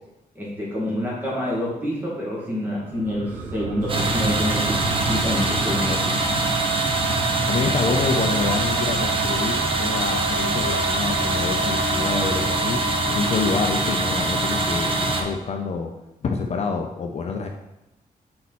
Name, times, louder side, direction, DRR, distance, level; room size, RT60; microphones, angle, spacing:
voice 1, 0.4-6.2, equal, 10° right, -6 dB, 2.2 m, -27 dB
sound 1, 2.9-12.0 12.3-12.4, right 4 dB, 90° right, 0.8 m, -35 dB
sound 2, 3.8-9.3, equal, 55° right, 2.2 m, -33 dB
sound 3, 3.9-15.2, right 2 dB, 35° right, 0.8 m, -23 dB
voice 2, 7.5-12.8 13.1-15.9 16.2-17.5, left 5 dB, 45° left, 3 dB, 0.5 m, -27 dB
5.9 x 4.3 x 4.2 m, 0.92 s
wide cardioid pair, 130°, 15 cm